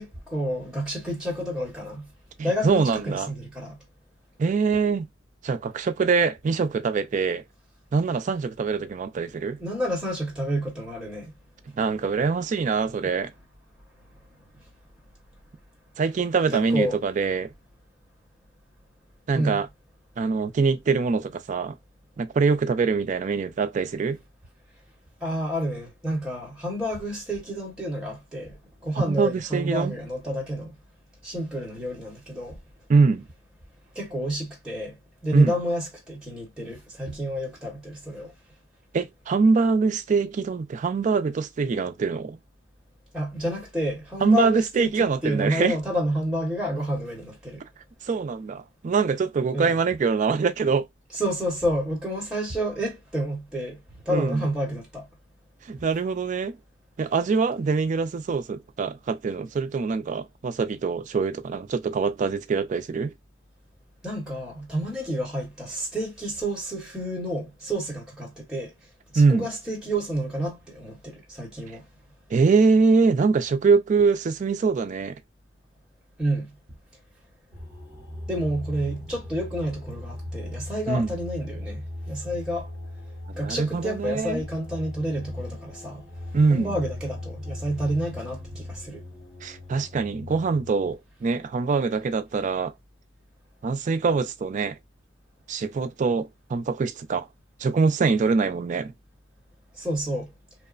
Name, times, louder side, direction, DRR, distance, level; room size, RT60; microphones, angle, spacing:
voice 1, 0.0-2.1 2.4-3.8 9.6-11.3 16.5-17.0 19.3-19.6 25.2-30.8 31.2-32.6 33.9-35.0 35.2-38.3 43.1-47.6 49.5-49.8 51.1-55.1 64.0-68.7 69.1-71.9 76.2-76.6 78.3-82.7 83.4-86.1 86.5-89.0 99.7-100.3, equal, 5° right, 1.1 m, -29 dB
voice 2, 2.4-3.3 4.4-5.1 5.4-7.4 7.9-9.6 11.7-13.3 16.0-17.5 19.3-19.7 20.2-21.8 22.2-24.2 29.0-29.9 32.9-33.3 35.3-35.6 38.9-42.4 44.2-45.8 48.0-50.9 54.1-54.4 55.7-56.6 57.0-63.1 69.2-69.5 72.3-75.2 80.9-81.1 83.4-84.4 86.3-86.7 89.4-92.7 93.6-94.8 95.5-97.3 97.6-98.9, right 4 dB, 40° right, 0.3 m, -23 dB
sound 1, 77.5-90.9, left 1 dB, 20° left, 1.2 m, -38 dB
2.9 x 2.1 x 2.3 m
head